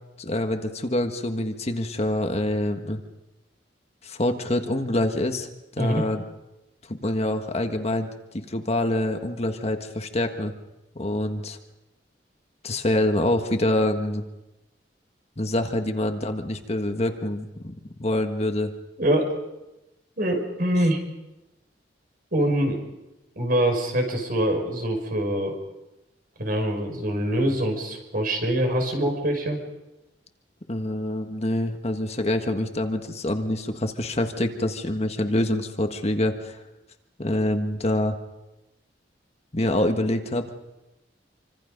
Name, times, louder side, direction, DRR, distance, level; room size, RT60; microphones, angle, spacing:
voice 1, 0.2-3.0 4.0-5.5 5.8-6.2 6.9-8.1 8.3-10.5 11.0-11.6 12.6-14.2 15.4-17.7 18.0-18.7 30.7-36.6 37.2-38.2 39.5-40.5, left 1 dB, 35° left, 6 dB, 1.6 m, -26 dB
voice 2, 19.0-19.3 20.2-21.0 22.3-22.8 23.4-25.6 26.4-29.6, right 1 dB, 55° right, 3 dB, 5.8 m, -24 dB
27.5 x 25.5 x 5.3 m, 0.98 s
head